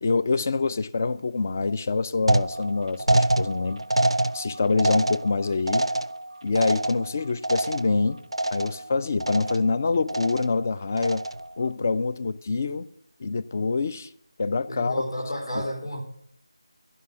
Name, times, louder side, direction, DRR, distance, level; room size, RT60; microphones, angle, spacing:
voice 1, 0.0-3.8 4.3-5.9 6.4-8.2 8.5-11.2 11.6-12.9 13.2-14.1 14.4-15.0 15.6-15.7, left 4 dB, 30° left, 0.4 m, -25 dB
sound 1, 2.3-8.1 8.3-8.9 9.2-9.8 10.1-10.6 11.0-11.5, right 1 dB, 80° right, 0.4 m, -26 dB
voice 2, 14.7-16.0, equal, 60° left, 3.5 m, -31 dB
15.0 x 5.4 x 7.8 m
figure-of-eight pair, 165°, 3 cm